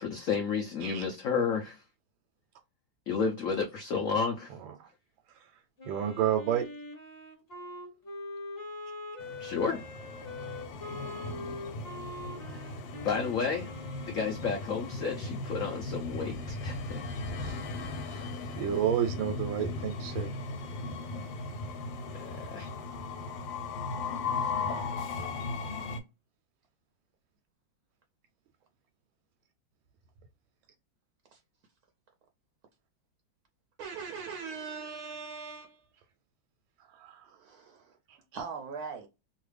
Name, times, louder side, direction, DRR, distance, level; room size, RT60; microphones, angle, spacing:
voice 1, 0.0-1.8 3.1-4.5 9.4-9.8 12.5-12.6 13.0-13.7 14.1-17.0 22.1-22.7, left 5 dB, 70° left, 0.8 m, -31 dB
Wind instrument woodwind instrument, 5.8-14.7, left 2 dB, 35° left, 1.2 m, -43 dB
voice 2, 5.9-6.7 17.4-17.6 18.1-18.3 18.6-20.3 36.9-37.3 38.1-38.2, right 10 dB, 90° right, 1.4 m, -31 dB
Train, 9.2-26.0, left 3 dB, 90° left, 1.6 m, -37 dB
voice 3, 24.3-24.6 31.3-31.4 33.8-35.9 37.3-38.0 38.3-39.1, right 5 dB, 70° right, 0.9 m, -41 dB
3.1 x 2.4 x 3.2 m
omnidirectional pair, 2.1 m